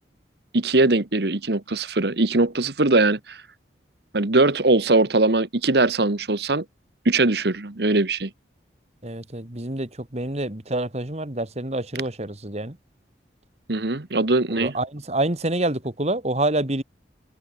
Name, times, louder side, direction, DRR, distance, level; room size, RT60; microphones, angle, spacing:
voice 1, 0.5-3.4 4.1-6.6 7.0-8.3 13.7-14.7, right 2 dB, 60° right, 1.3 m, -21 dB
voice 2, 9.0-12.8 14.5-16.8, right 1 dB, 35° right, 2.2 m, -27 dB
head